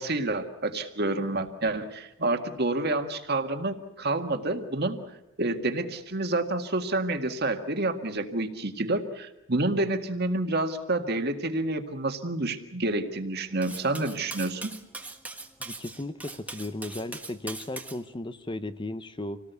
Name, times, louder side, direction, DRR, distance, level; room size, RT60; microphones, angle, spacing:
voice 1, 0.0-5.0 5.4-14.7, right 2 dB, 50° right, 6 dB, 1.9 m, -28 dB
Cutlery silverware, 13.6-18.0, right 2 dB, 5° right, 1.4 m, -40 dB
voice 2, 15.6-19.4, left 1 dB, 25° left, 11 dB, 0.8 m, -35 dB
27.0 x 18.5 x 8.2 m, 0.93 s
head